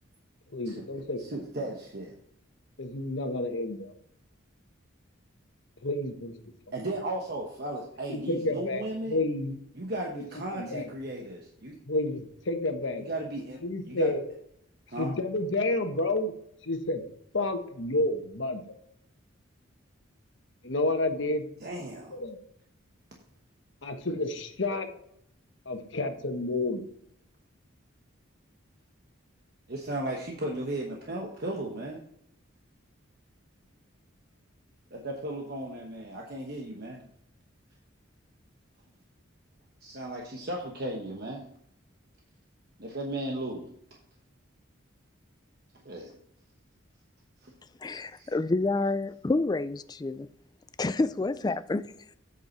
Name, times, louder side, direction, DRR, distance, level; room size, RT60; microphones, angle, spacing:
voice 1, 0.5-1.2 2.8-4.0 5.8-6.5 8.1-8.8 9.1-9.6 10.1-10.2 10.5-10.9 11.9-13.0 13.6-14.3 15.0-16.3 16.6-17.0 17.3-18.7 20.6-21.4 22.1-22.4 23.8-24.9 25.7-26.8, left 2 dB, 65° left, 1.2 m, -30 dB
voice 2, 1.2-2.1 6.7-9.2 9.7-11.8 12.9-13.6 13.9-14.1 14.9-15.1 21.6-22.2 29.7-32.0 34.9-37.0 39.8-41.5 42.8-43.7 45.8-46.2 47.4-47.5 48.1-48.3, right 1 dB, 50° right, 1.1 m, -35 dB
voice 3, 47.8-50.3 50.8-51.9, left 2 dB, 20° left, 0.3 m, -28 dB
8.2 x 6.8 x 4.4 m
head